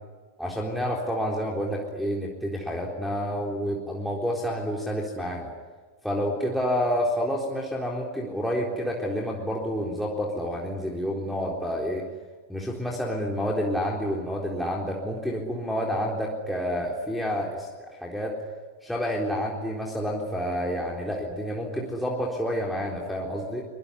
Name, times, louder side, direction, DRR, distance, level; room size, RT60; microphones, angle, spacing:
voice 1, 0.4-5.5 6.0-12.0 12.5-18.4 18.8-23.7, equal, ahead, -3 dB, 3.9 m, -29 dB
24.0 x 23.0 x 10.0 m, 1.4 s
figure-of-eight pair, 90°, 0 cm